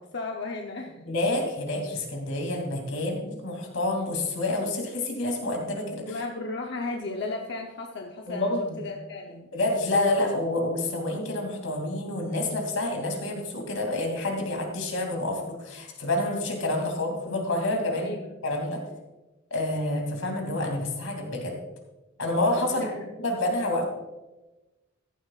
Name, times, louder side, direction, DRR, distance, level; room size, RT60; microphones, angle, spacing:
voice 1, 0.0-1.0 6.1-9.5 17.9-18.3 22.7-23.0, left 3 dB, 55° left, 1 dB, 0.8 m, -35 dB
voice 2, 1.1-6.2 8.3-8.8 9.5-18.1 18.4-18.8 19.5-21.5 22.2-22.9 23.2-23.8, left 2 dB, 90° left, 2 dB, 2.8 m, -28 dB
14.0 x 11.5 x 2.5 m, 1.1 s
head